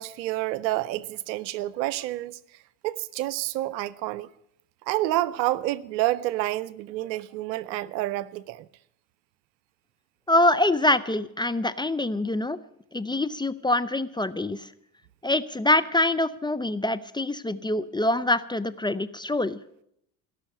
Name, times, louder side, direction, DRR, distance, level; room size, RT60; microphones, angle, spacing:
voice 1, 0.0-2.4 2.8-4.3 4.9-8.7, right 16 dB, 90° right, 0.7 m, -29 dB
voice 2, 10.3-12.6 12.9-14.7 15.2-19.6, left 1 dB, 10° left, 0.5 m, -25 dB
17.0 x 6.3 x 9.8 m
hypercardioid pair, 75°, 50 cm